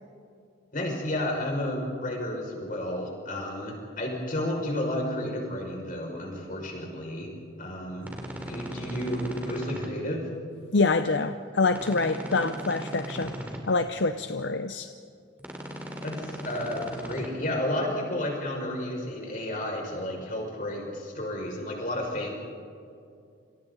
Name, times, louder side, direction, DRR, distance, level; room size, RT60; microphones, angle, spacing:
voice 1, 0.7-7.3 7.6-8.1 8.5-10.3 16.0-22.3, left 1 dB, 45° left, -1 dB, 6.1 m, -32 dB
sound 1, 8.0-9.9 11.7-13.6 15.4-17.3, equal, 10° right, 2.9 m, -38 dB
voice 2, 10.7-13.3 13.7-14.9, left 3 dB, 70° left, 9 dB, 0.7 m, -26 dB
29.0 x 27.5 x 4.1 m, 2.4 s
head